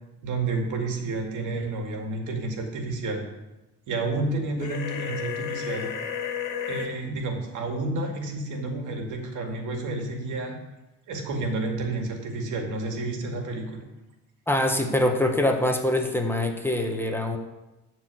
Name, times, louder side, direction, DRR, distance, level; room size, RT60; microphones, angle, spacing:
voice 1, 0.2-3.3 3.9-5.9 6.7-10.6 11.1-13.8, right 2 dB, 80° right, 2 dB, 2.3 m, -30 dB
sound 1, 4.6-6.9, left 8 dB, 85° left, 1.9 m, -32 dB
voice 2, 14.5-17.4, left 1 dB, 5° left, 3 dB, 1.5 m, -24 dB
12.0 x 4.6 x 8.3 m, 1.0 s
cardioid pair, 90°, 30 cm